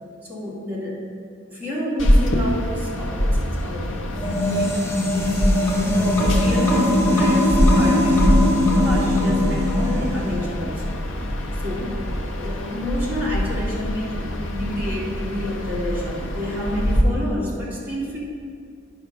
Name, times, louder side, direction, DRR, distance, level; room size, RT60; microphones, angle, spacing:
voice 1, 0.2-1.0 1.5-3.9 4.5-4.8 5.1-8.3 8.8-11.0 11.5-12.0 12.3-18.2, left 1 dB, 10° right, -8 dB, 2.1 m, -29 dB
sound 1, 2.0-17.0, equal, 65° left, 0.8 m, -24 dB
sound 2, 4.2-10.5, left 1 dB, 10° left, 0.9 m, -20 dB
9.9 x 5.4 x 5.4 m, 2.3 s
head